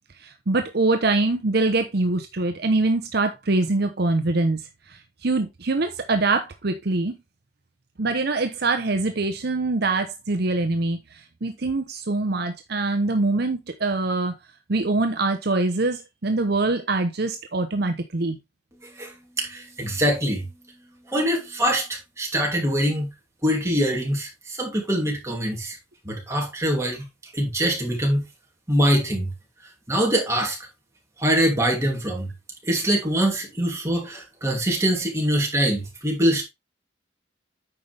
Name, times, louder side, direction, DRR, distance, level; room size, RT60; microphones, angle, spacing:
voice 1, 0.2-4.6 4.9-7.2 8.0-11.0 11.4-14.3 14.7-18.4, right 2 dB, 55° right, 0.9 m, -24 dB
voice 2, 18.8-20.5 21.1-23.1 23.4-25.8 26.0-27.1 27.3-28.3 28.7-29.3 29.9-30.6 31.2-32.3 32.6-36.4, equal, 15° right, 2.8 m, -23 dB
9.3 x 5.6 x 3.4 m
head